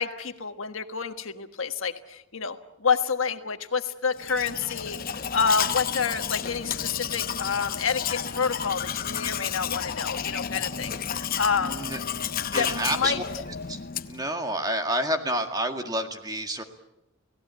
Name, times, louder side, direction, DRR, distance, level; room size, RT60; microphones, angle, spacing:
voice 1, 0.0-11.8 12.6-13.2, left 5 dB, 65° left, 7 dB, 1.5 m, -28 dB
Domestic sounds home sounds, 4.2-14.3, left 8 dB, 45° left, 0.8 m, -31 dB
voice 2, 11.6-12.0 12.5-13.2 13.7-13.8 14.0-16.6, right 1 dB, 20° right, 5 dB, 2.0 m, -29 dB
29.0 x 18.0 x 8.3 m, 0.90 s
head